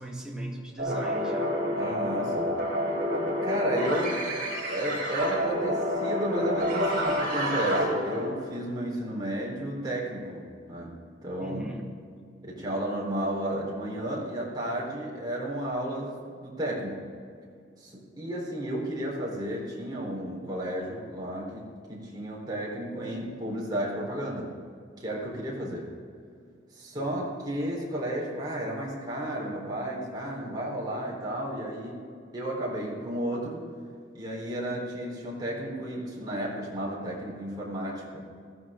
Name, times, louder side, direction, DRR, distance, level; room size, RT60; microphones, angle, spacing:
voice 1, 0.0-1.5 11.4-11.9 26.9-27.3, right 1 dB, 5° right, -3 dB, 2.1 m, -38 dB
sound 1, 0.8-8.5, equal, 45° right, 4.4 m, -28 dB
voice 2, 1.7-2.5 3.4-4.3 4.7-11.0 11.2-11.6 12.4-17.1 17.8-24.5 25.0-26.0 26.7-32.1 32.3-33.7 34.1-38.2, right 1 dB, 20° right, -4 dB, 4.2 m, -33 dB
20.0 x 14.5 x 3.8 m, 2.2 s
head